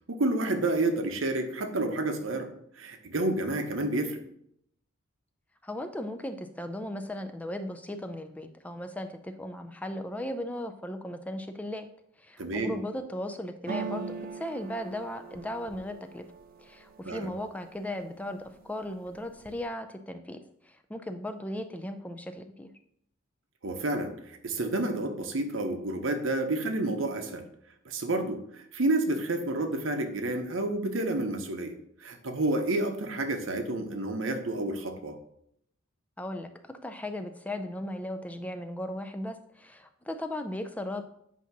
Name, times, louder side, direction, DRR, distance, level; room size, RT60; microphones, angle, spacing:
voice 1, 0.1-2.5 2.8-4.2 12.4-12.8 17.0-17.3 23.6-27.5 27.8-35.2, right 2 dB, 70° right, 6 dB, 0.9 m, -30 dB
voice 2, 5.6-11.9 12.2-16.2 16.6-20.4 20.6-22.7 36.2-41.0, left 1 dB, 5° left, 7 dB, 0.4 m, -37 dB
sound 1, 13.7-17.5 18.0-18.6 18.9-19.7, right 5 dB, 45° right, 0.5 m, -41 dB
8.2 x 2.8 x 5.8 m, 0.73 s
head